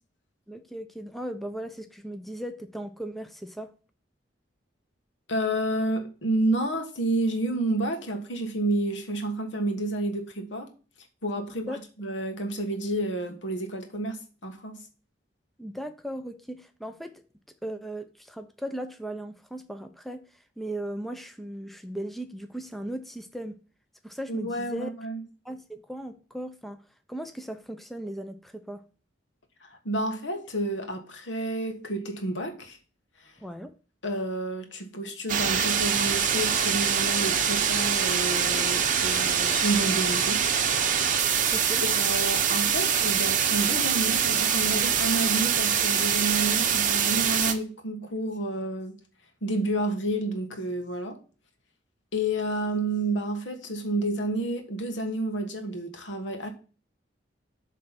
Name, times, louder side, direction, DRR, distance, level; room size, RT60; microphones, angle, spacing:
voice 1, 0.5-3.7 11.7-11.8 15.6-17.2 17.6-23.6 24.0-25.0 25.4-26.8 27.1-28.8 33.4-33.7 41.5-41.8, right 1 dB, ahead, 0.5 m, -37 dB
voice 2, 5.3-10.7 11.2-14.8 24.3-25.2 29.6-32.8 33.2-33.3 34.0-40.4 41.8-48.9 49.4-51.2 52.1-56.5, right 1 dB, 75° left, 1.5 m, -30 dB
sound 1, 35.3-47.5, right 7 dB, 45° right, 0.8 m, -24 dB
7.8 x 3.3 x 5.8 m
head